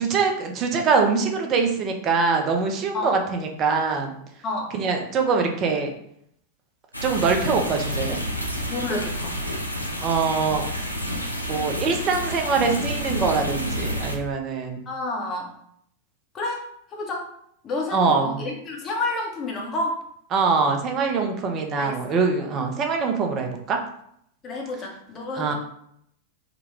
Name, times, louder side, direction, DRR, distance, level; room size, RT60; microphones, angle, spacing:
voice 1, 0.0-4.2 4.7-5.9 7.0-8.2 10.0-10.6 11.5-14.8 17.9-18.4 20.3-23.8 25.3-25.5, right 5 dB, 35° right, 4 dB, 0.6 m, -23 dB
sound 1, 6.9-14.2, equal, 90° left, 0.5 m, -29 dB
voice 2, 8.7-9.4 14.9-15.5 16.3-16.6 16.9-17.3 17.6-20.0 21.8-22.2 24.4-25.5, left 2 dB, 30° left, 0 dB, 0.8 m, -29 dB
3.6 x 2.2 x 3.1 m, 0.71 s
figure-of-eight pair, 90°, 0 cm